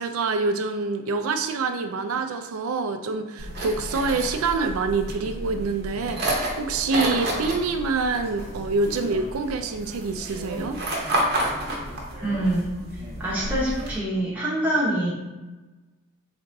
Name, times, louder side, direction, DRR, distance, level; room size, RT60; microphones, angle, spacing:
voice 1, 0.0-10.8, right 4 dB, 80° right, 7 dB, 0.4 m, -26 dB
sound 1, 3.4-14.0, right 1 dB, 45° right, 0.8 m, -30 dB
voice 2, 12.2-12.7 13.2-15.1, right 1 dB, 10° right, -7 dB, 1.1 m, -25 dB
4.0 x 3.4 x 2.6 m, 1.2 s
head